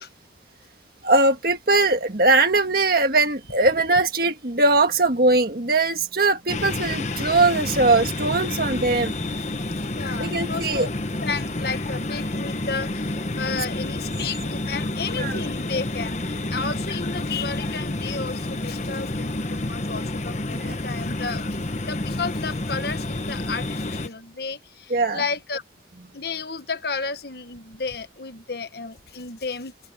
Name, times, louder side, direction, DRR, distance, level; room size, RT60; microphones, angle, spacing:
voice 1, 1.0-9.1 10.2-10.9 15.2-15.4 20.6-20.7 24.9-25.2, right 3 dB, 50° right, 1.7 m, -20 dB
sound 1, 6.5-24.1, left 2 dB, 40° left, 1.1 m, -29 dB
voice 2, 9.8-10.9 11.2-21.6 21.9-25.6 26.1-29.7, left 4 dB, 55° left, 1.3 m, -32 dB
head